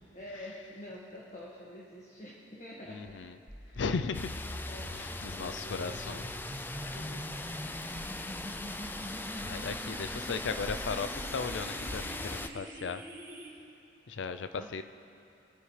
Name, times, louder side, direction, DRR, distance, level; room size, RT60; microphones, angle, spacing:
voice 1, 0.1-3.0 3.6-3.8 4.4-4.9 5.2-6.3 6.9-7.3 14.5-14.8, left 1 dB, 40° left, -5 dB, 1.7 m, -47 dB
voice 2, 2.9-3.4 3.8-4.4 4.9-6.2 6.8-7.0 9.4-13.0 14.1-14.8, left 4 dB, 85° left, 10 dB, 0.5 m, -36 dB
sound 1, 3.5-13.5, equal, 20° right, 1.8 m, -44 dB
sound 2, 4.1-12.5, left 2 dB, 10° left, 0.4 m, -40 dB
28.0 x 9.6 x 3.3 m, 3.0 s
head